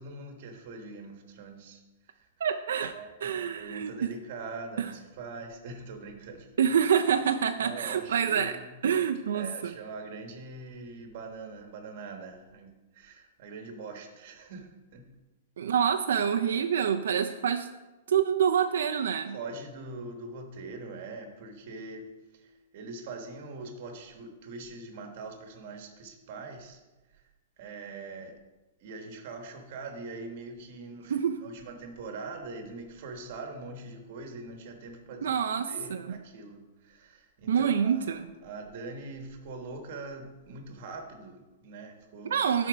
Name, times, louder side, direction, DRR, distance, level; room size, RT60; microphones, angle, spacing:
voice 1, 0.0-2.3 2.9-6.5 7.6-8.7 9.3-15.1 19.3-26.8 27.1-27.3 27.6-28.4 28.8-35.3 35.6-42.4, right 3 dB, 45° right, 5 dB, 1.2 m, -43 dB
voice 2, 2.4-2.9 3.2-4.1 4.8-4.9 6.6-8.5 8.8-9.7 15.6-17.7 18.1-19.4 31.1-31.4 35.2-36.1 37.5-38.3 42.3-42.7, right 8 dB, 85° right, 6 dB, 0.4 m, -27 dB
9.7 x 4.4 x 5.0 m, 1.1 s
supercardioid pair, 175°, 0 cm